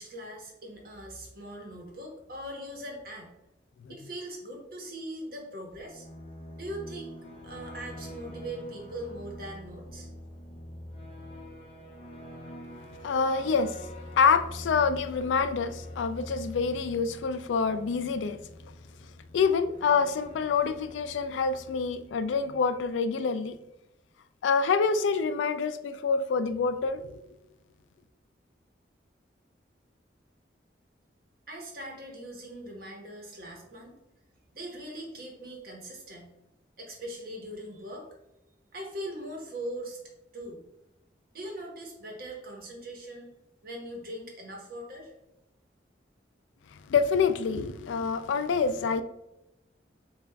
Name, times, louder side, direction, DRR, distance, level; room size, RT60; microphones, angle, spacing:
voice 1, 0.0-3.3 3.9-6.1 6.5-7.2 7.4-10.1 31.5-33.9 34.5-36.3 36.8-38.1 38.7-40.0 40.3-40.7 41.3-43.3 43.6-45.1, right 1 dB, 50° right, 1.0 m, -41 dB
sound 1, 5.7-22.3, left 1 dB, 30° left, 0.7 m, -45 dB
voice 2, 13.0-13.7 14.2-18.4 19.3-23.6 24.4-27.0 46.9-49.0, left 5 dB, 85° left, 0.3 m, -26 dB
7.2 x 2.4 x 2.2 m
head